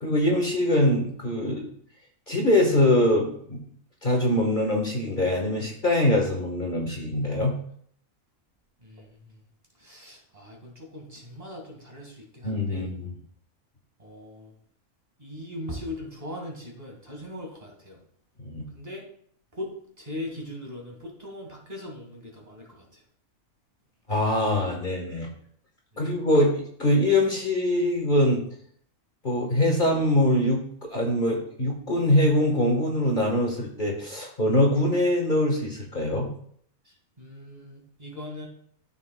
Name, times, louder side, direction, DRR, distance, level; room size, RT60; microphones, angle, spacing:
voice 1, 0.0-1.7 2.3-3.6 4.0-7.6 12.4-13.1 18.4-18.7 24.1-25.3 26.0-28.4 29.2-36.3, left 1 dB, 35° left, -1 dB, 1.5 m, -23 dB
voice 2, 8.8-9.3 9.8-12.9 14.0-14.5 15.2-18.0 18.7-19.0 19.5-23.0 37.2-38.5, left 1 dB, 30° right, 0 dB, 2.0 m, -40 dB
13.5 x 5.9 x 2.3 m, 0.63 s
omnidirectional pair, 1.5 m